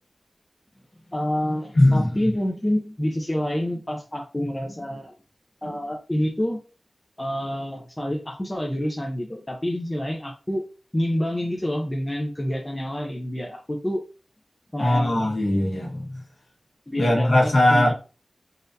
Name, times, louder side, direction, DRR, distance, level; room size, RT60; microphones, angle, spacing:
voice 1, 1.1-5.1 5.6-6.6 7.2-14.1 14.7-15.3 16.9-17.9, equal, 15° left, 2 dB, 0.5 m, -28 dB
voice 2, 1.7-2.1 14.8-16.2 17.0-17.9, left 1 dB, 65° left, -2 dB, 1.4 m, -19 dB
4.0 x 2.5 x 2.6 m, 0.33 s
wide cardioid pair, 90°, 0 cm